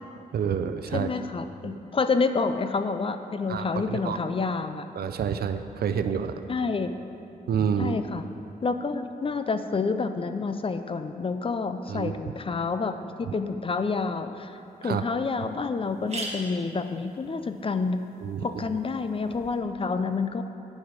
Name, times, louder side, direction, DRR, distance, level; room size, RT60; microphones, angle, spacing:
voice 1, 0.3-1.1 1.6-1.7 3.5-4.2 5.0-6.3 7.5-7.9 11.9-12.2 14.8-15.0 18.2-18.4, right 7 dB, 75° right, 9 dB, 0.5 m, -28 dB
voice 2, 0.9-4.9 6.5-6.9 7.8-8.3 8.6-18.0 18.4-20.4, left 4 dB, 35° left, 9 dB, 0.4 m, -28 dB
sound 1, 14.5-14.6 15.1-15.2 15.4-15.5 15.8-19.6, right 2 dB, 40° right, 1.3 m, -42 dB
9.5 x 6.4 x 5.0 m, 2.7 s
wide cardioid pair, 105°, 16 cm